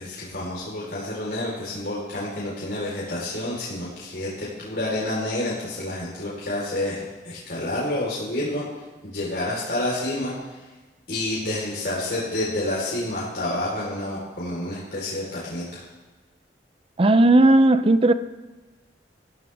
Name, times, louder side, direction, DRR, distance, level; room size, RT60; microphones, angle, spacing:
voice 1, 0.0-7.0 7.2-8.6 9.0-10.6 11.1-15.8, left 1 dB, 65° left, -7 dB, 4.4 m, -29 dB
voice 2, 17.0-18.1, right 2 dB, 30° right, 12 dB, 0.6 m, -15 dB
24.0 x 15.5 x 3.6 m, 1.2 s
head